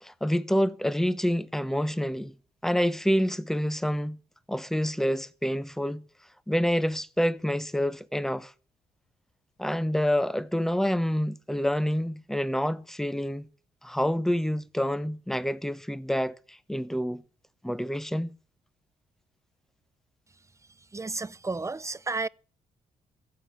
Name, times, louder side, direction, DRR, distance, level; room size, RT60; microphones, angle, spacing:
voice 1, 0.0-2.3 2.6-4.2 4.5-6.0 6.5-8.5 9.6-13.4 13.8-17.2 17.6-18.3, equal, ahead, 1.1 m, -27 dB
voice 2, 20.9-22.3, right 3 dB, 15° right, 0.7 m, -32 dB
15.0 x 7.5 x 8.4 m
hypercardioid pair, 50°, 17 cm